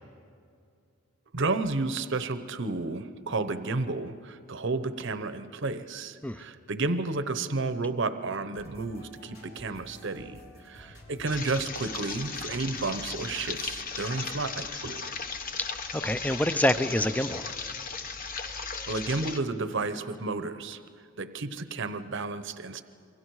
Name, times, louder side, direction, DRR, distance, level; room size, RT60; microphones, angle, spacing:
voice 1, 1.3-15.2 18.5-20.8 21.2-22.8, right 3 dB, 60° right, 11 dB, 0.9 m, -32 dB
sound 1, 8.5-16.4, left 1 dB, 80° left, 4.3 m, -53 dB
sound 2, 11.3-19.4, left 5 dB, 40° left, 1.1 m, -36 dB
voice 2, 15.6-17.6, left 1 dB, 5° left, 12 dB, 0.5 m, -27 dB
28.0 x 22.5 x 4.8 m, 2.4 s
head